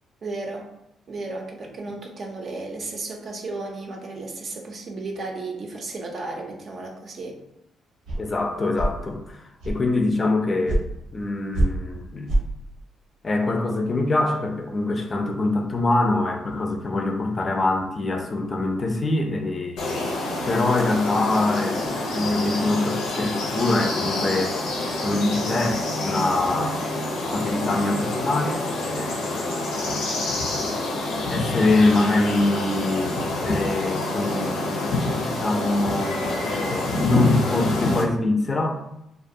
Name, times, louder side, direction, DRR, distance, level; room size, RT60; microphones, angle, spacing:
voice 1, 0.2-0.7 1.1-7.4, right 3 dB, 50° right, 0 dB, 0.5 m, -34 dB
sound 1, 8.1-8.2 8.7-9.0 9.6-9.8 10.7-10.8 11.5-11.7 12.3-12.4, right 1 dB, 80° right, 0.8 m, -22 dB
voice 2, 8.2-10.8 11.1-12.3 13.2-20.2 20.5-24.6 25.0-26.8 27.3-29.6 31.3-36.1 36.4-38.7, left 2 dB, 35° left, 3 dB, 0.4 m, -24 dB
sound 2, 19.8-38.0, left 2 dB, 85° left, 0.6 m, -27 dB
2.4 x 2.2 x 2.6 m, 0.83 s
cardioid pair, 90°, 0 cm